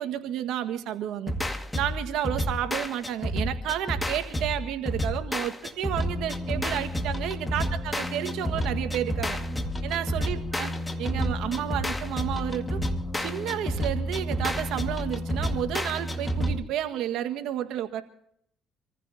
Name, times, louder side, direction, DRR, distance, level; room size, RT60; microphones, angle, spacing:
voice 1, 0.0-1.3 1.7-9.4 9.8-10.7 11.0-12.8 13.2-18.0, right 11 dB, 80° right, 8 dB, 1.6 m, -31 dB
sound 1, 1.3-16.6, equal, 15° left, 2.0 m, -30 dB
27.0 x 15.0 x 2.8 m, 0.69 s
supercardioid pair, 80°, 0 cm